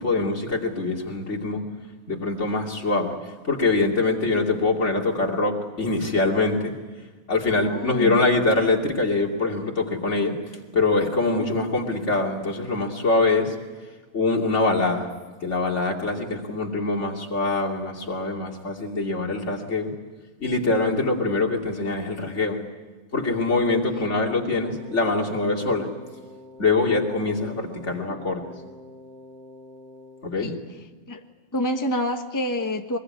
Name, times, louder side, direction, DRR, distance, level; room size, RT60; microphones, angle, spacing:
voice 1, 0.0-1.6 2.1-6.7 7.3-10.4 10.7-13.5 14.1-15.1 15.4-19.9 20.4-22.6 23.1-25.9 26.6-28.4 30.2-30.5, left 3 dB, 55° left, 0 dB, 3.1 m, -24 dB
voice 2, 7.5-8.2 11.4-11.5 23.9-24.0 30.4-30.5 31.1-31.2 31.5-33.0, left 1 dB, 15° left, 5 dB, 1.2 m, -27 dB
Wind instrument woodwind instrument, 24.6-30.3, left 1 dB, 45° right, 5.5 m, -45 dB
23.5 x 21.0 x 9.7 m, 1.3 s
omnidirectional pair, 1.5 m